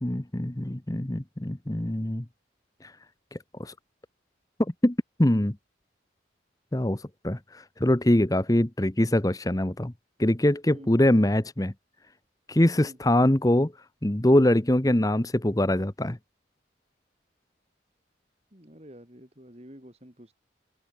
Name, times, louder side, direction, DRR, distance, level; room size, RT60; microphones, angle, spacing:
voice 1, 0.0-2.2 2.8-2.9 3.3-3.7 4.8-5.6 6.7-9.9 10.2-11.7 12.5-13.7 14.0-16.2, left 1 dB, 20° left, 0.9 m, -23 dB
voice 2, 18.5-20.3, equal, 35° right, 4.2 m, -48 dB
head